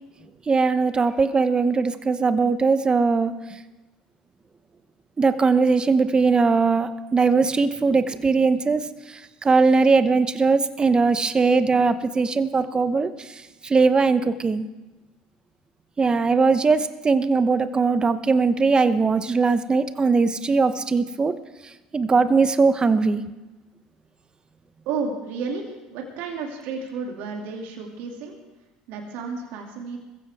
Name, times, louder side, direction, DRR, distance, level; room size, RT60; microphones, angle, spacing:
voice 1, 0.5-3.3 5.2-8.8 9.4-13.1 13.7-14.6 16.0-21.3 21.9-23.2, right 4 dB, 25° right, 12 dB, 1.0 m, -20 dB
voice 2, 24.8-28.4 28.9-30.0, right 4 dB, 70° right, 1 dB, 2.7 m, -32 dB
21.0 x 15.0 x 3.6 m, 1.1 s
hypercardioid pair, 75°, 3 cm